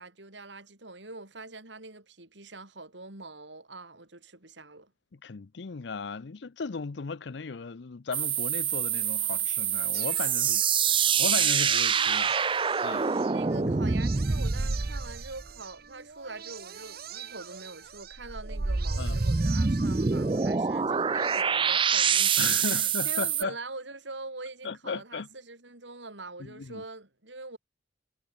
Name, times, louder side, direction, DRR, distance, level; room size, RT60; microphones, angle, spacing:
voice 1, 0.0-4.9 12.7-27.6, right 3 dB, 70° right, 4.5 m, -44 dB
voice 2, 5.1-13.1 13.5-13.7 19.0-19.2 22.4-23.6 24.6-25.3 26.4-26.8, left 4 dB, 65° left, 0.6 m, -37 dB
sound 1, 8.1-15.5 18.2-23.4, right 6 dB, 25° right, 0.5 m, -26 dB
sound 2, 9.9-21.4, right 8 dB, 55° right, 1.6 m, -45 dB
head